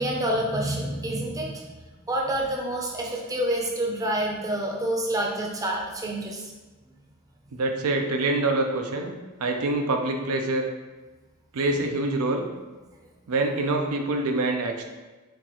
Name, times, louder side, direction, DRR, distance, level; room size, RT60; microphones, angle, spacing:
voice 1, 0.0-1.6 2.1-6.4 11.7-11.8, right 1 dB, 15° right, -1 dB, 0.6 m, -28 dB
voice 2, 7.5-9.1 9.4-10.7 11.5-12.5 13.3-14.8, right 2 dB, 80° right, 3 dB, 0.5 m, -25 dB
4.4 x 2.4 x 4.2 m, 1.2 s
head